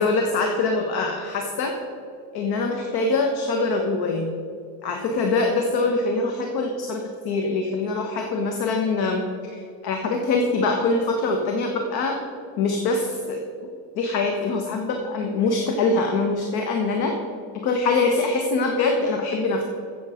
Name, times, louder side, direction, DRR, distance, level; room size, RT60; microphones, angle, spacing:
voice 1, 0.0-1.7 2.3-4.3 4.8-9.2 9.5-12.2 12.6-13.4 13.9-17.1 17.6-19.6, left 3 dB, 50° left, 3 dB, 1.4 m, -23 dB
15.5 x 7.3 x 5.1 m, 2.4 s
cardioid pair, 140°, 47 cm